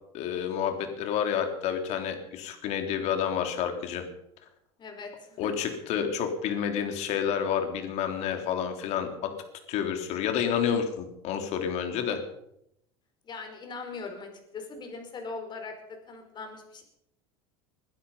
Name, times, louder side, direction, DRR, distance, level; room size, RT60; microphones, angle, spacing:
voice 1, 0.1-4.0 5.4-9.3 9.7-12.2, left 8 dB, 55° left, 6 dB, 3.5 m, -29 dB
voice 2, 4.8-5.5 13.2-16.8, left 4 dB, 35° left, 5 dB, 5.2 m, -40 dB
21.5 x 11.5 x 5.6 m, 0.77 s
hypercardioid pair, 95°, 14 cm